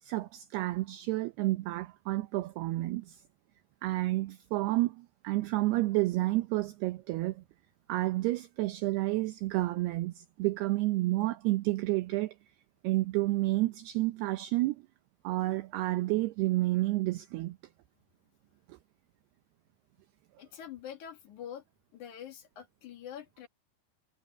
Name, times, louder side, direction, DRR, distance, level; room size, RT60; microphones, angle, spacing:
voice 1, 0.0-3.2 3.8-7.4 7.9-12.4 12.8-14.9 15.2-17.6 18.7-18.8, right 18 dB, 75° right, 2.6 m, -30 dB
voice 2, 20.4-21.6 21.9-23.5, left 9 dB, 60° left, 2.3 m, -45 dB
omnidirectional pair, 5.1 m